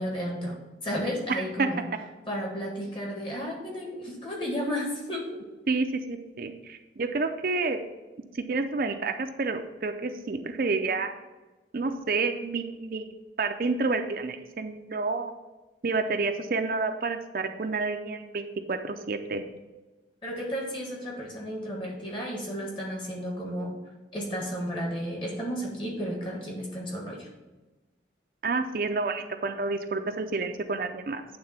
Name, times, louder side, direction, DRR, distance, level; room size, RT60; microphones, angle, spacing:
voice 1, 0.0-1.8 2.3-5.4 20.2-23.8 24.1-27.3, equal, 30° left, -1 dB, 1.7 m, -33 dB
voice 2, 1.3-1.7 5.7-7.8 8.3-11.2 11.7-13.1 13.4-15.3 15.8-19.4 28.4-31.2, right 3 dB, 50° right, 6 dB, 0.5 m, -29 dB
8.7 x 3.6 x 5.7 m, 1.1 s
head